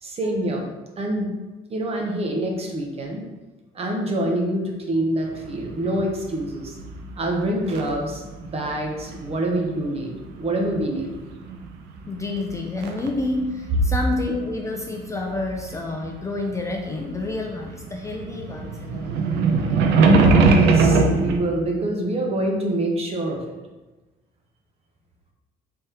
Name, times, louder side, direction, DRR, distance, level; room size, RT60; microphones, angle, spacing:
voice 1, 0.0-1.3 1.7-3.2 3.7-6.8 7.2-11.1 20.4-23.6, right 1 dB, 35° right, 0 dB, 0.7 m, -26 dB
sound 1, 5.3-8.1 8.4-9.7 10.4-11.9 12.2-17.3 17.6-21.4, right 3 dB, 90° right, 0.5 m, -21 dB
voice 2, 12.1-19.1, left 2 dB, 20° left, 1 dB, 0.4 m, -29 dB
3.4 x 3.3 x 2.8 m, 1.2 s
cardioid pair, 110°, 17 cm